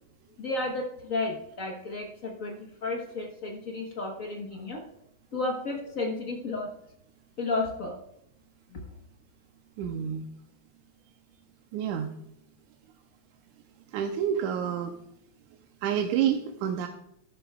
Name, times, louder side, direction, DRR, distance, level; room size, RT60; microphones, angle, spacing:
voice 1, 0.4-4.8 5.3-6.7 7.4-8.0 8.7-8.8, left 2 dB, 80° left, 1 dB, 0.7 m, -32 dB
voice 2, 9.8-10.3 11.7-12.1 13.9-15.0 15.8-16.9, right 9 dB, 85° right, 4 dB, 2.2 m, -28 dB
14.5 x 12.5 x 2.3 m, 0.75 s
omnidirectional pair, 3.4 m